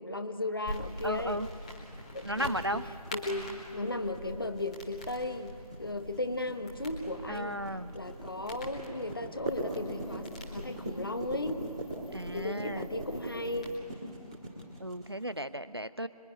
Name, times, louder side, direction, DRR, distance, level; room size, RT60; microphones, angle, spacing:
voice 1, 0.0-1.4 2.1-7.6 7.9-11.6 12.3-13.7, left 2 dB, 35° left, 8 dB, 1.2 m, -36 dB
sound 1, 0.6-13.8, left 1 dB, 10° left, 1.6 m, -45 dB
voice 2, 1.0-1.5 2.2-2.8 7.3-7.9 12.1-12.9 14.8-16.1, right 1 dB, 40° right, 14 dB, 0.6 m, -34 dB
sound 2, 1.6-15.4, right 1 dB, 10° right, 1.9 m, -41 dB
25.5 x 23.0 x 9.7 m, 2.5 s
figure-of-eight pair, 170°, 21 cm